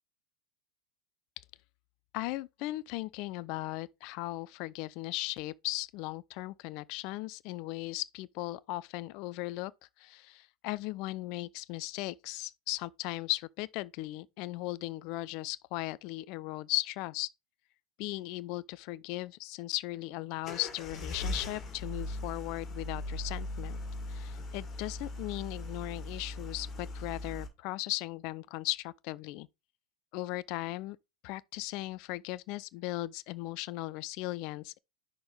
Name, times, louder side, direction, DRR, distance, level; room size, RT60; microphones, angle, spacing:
voice 1, 2.1-9.7 10.0-17.3 18.0-23.8 24.1-29.5 30.1-31.0 31.2-34.8, left 19 dB, 55° left, 0.4 m, -37 dB
sound 1, 20.4-27.5, left 2 dB, 35° left, 2.2 m, -39 dB
6.0 x 3.7 x 4.9 m
hypercardioid pair, 90°, 0 cm